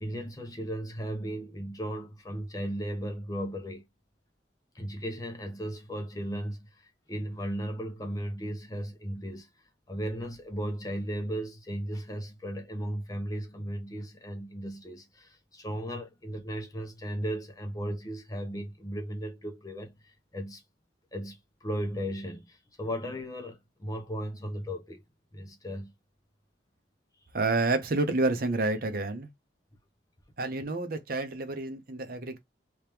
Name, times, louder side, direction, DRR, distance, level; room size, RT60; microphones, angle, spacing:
voice 1, 0.0-3.8 4.7-9.5 9.9-20.6 21.1-25.0 25.3-25.9, equal, 20° left, 0.7 m, -36 dB
voice 2, 27.3-29.3 30.4-32.4, right 2 dB, 50° right, 0.8 m, -29 dB
3.2 x 2.9 x 3.4 m
head